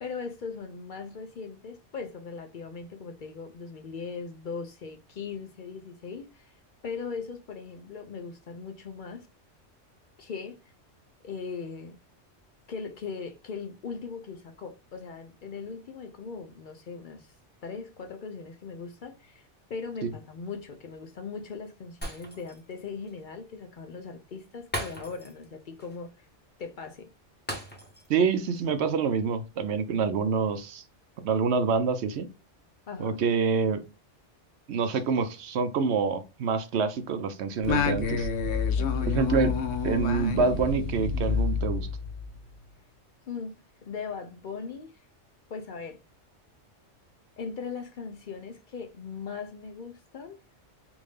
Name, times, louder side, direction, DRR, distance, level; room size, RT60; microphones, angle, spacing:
voice 1, 0.0-6.5 6.8-9.3 10.2-10.6 11.2-12.0 12.7-17.3 17.6-26.3 26.6-27.1 32.9-33.2 38.8-39.3 43.3-43.6 43.8-45.0 45.5-46.0 47.4-50.4, left 5 dB, 55° left, 0.6 m, -39 dB
Shatter, 22.0-22.7 23.1-23.2 24.7-25.5 25.8-26.0 27.5-28.2 28.5-28.7, equal, 10° left, 1.0 m, -37 dB
voice 2, 28.1-30.8 31.2-32.3 33.0-33.8 34.7-38.3 39.1-39.6 39.8-41.9, right 5 dB, 70° right, 0.8 m, -26 dB
Singing, 37.6-42.4, left 5 dB, 90° left, 1.0 m, -28 dB
3.6 x 2.6 x 3.2 m
omnidirectional pair, 1.2 m